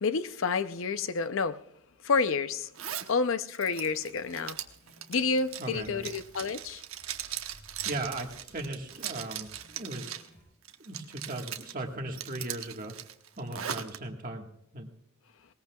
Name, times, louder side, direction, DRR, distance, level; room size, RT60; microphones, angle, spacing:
voice 1, 0.0-1.6 2.0-2.7 3.1-4.6 5.1-6.8, left 4 dB, 65° left, 0.6 m, -29 dB
Zipper (clothing), 2.7-3.1 3.5-10.3 10.6-11.7 12.1-14.0, right 10 dB, 80° right, 1.0 m, -39 dB
sound 1, 4.8-10.4, equal, 45° left, 6.5 m, -57 dB
voice 2, 5.6-6.1 7.8-10.1 10.8-12.9 13.4-14.5 14.7-14.9, right 2 dB, 40° right, 1.6 m, -37 dB
20.5 x 19.0 x 2.3 m
head